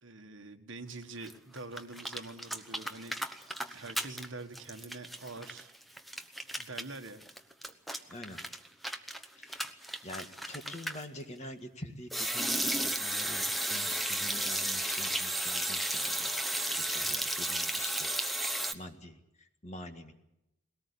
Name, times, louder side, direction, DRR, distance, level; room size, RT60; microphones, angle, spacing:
voice 1, 0.0-3.2 3.5-5.7 6.6-7.2 9.6-9.7, right 3 dB, 55° right, 6 dB, 1.7 m, -45 dB
sound 1, 1.2-1.3 1.6-4.3 4.5-11.0 12.1-18.7, right 1 dB, ahead, 0.9 m, -34 dB
voice 2, 8.1-8.4 9.4-9.7 10.0-20.1, left 1 dB, 30° left, 6 dB, 1.8 m, -46 dB
21.5 x 18.0 x 8.5 m, 0.87 s
head